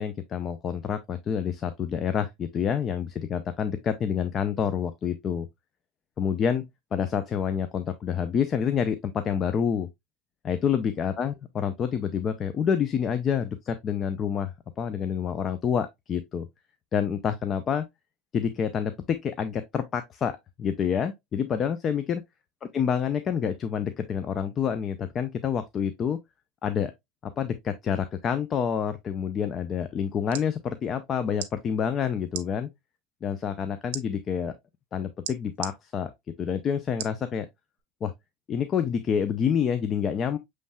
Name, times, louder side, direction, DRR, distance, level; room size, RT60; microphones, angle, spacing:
voice 1, 0.0-5.5 6.2-6.7 6.9-9.9 10.4-16.5 16.9-17.9 18.3-22.2 22.7-26.2 26.6-26.9 27.2-32.7 33.2-34.5 34.9-36.1 36.4-37.5 38.0-38.1 38.5-40.4, left 7 dB, 35° left, 0.5 m, -28 dB
sound 1, 30.1-30.5 31.3-31.5 32.3-32.5 33.9-34.0 35.2-35.7 37.0-37.2 37.8-37.9, right 12 dB, 75° right, 0.6 m, -35 dB
7.0 x 3.2 x 2.2 m
supercardioid pair, 105°, 0 cm